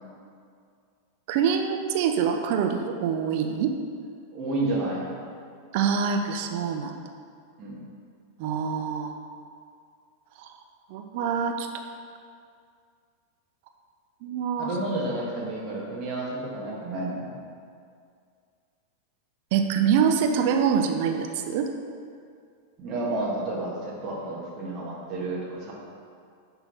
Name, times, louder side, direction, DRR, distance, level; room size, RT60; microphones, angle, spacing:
voice 1, 1.3-3.7 5.7-6.9 8.4-9.1 10.4-10.5 10.9-11.7 14.2-14.7 19.5-21.7, right 7 dB, 50° right, 5 dB, 0.6 m, -25 dB
voice 2, 4.3-5.1 7.6-7.8 14.6-17.3 22.8-25.7, right 2 dB, 30° right, -6 dB, 1.8 m, -30 dB
10.5 x 3.9 x 4.3 m, 2.3 s
figure-of-eight pair, 90°, 0 cm